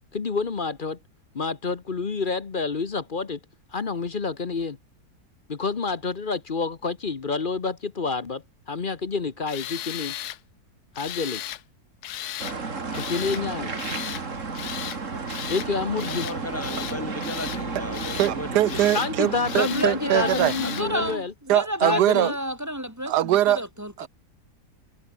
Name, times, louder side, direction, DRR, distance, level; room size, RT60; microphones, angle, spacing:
voice 1, 0.1-1.0 1.3-3.4 3.7-4.8 5.5-10.1 11.0-11.4 13.0-13.7 15.5-16.3 18.9-21.3 21.8-22.3, left 4 dB, 35° left, 1.1 m, -28 dB
Tools, 9.5-10.4 10.9-11.6 12.0-12.6 12.9-13.4 13.8-14.2 14.5-15.0 15.3-15.7 16.0-16.4 16.6-17.6 17.9-18.3 18.7-19.1 19.4-19.9 20.2-20.9, left 13 dB, 75° left, 1.3 m, -35 dB
sound 1, 12.4-21.2, right 4 dB, 50° right, 2.8 m, -33 dB
voice 2, 16.2-18.9, left 2 dB, 10° left, 1.0 m, -36 dB
voice 3, 18.1-20.5 21.5-22.3 23.1-23.6 24.0-24.1, right 13 dB, 90° right, 1.3 m, -22 dB
voice 4, 19.5-24.1, equal, 10° right, 1.7 m, -30 dB
omnidirectional pair, 1.7 m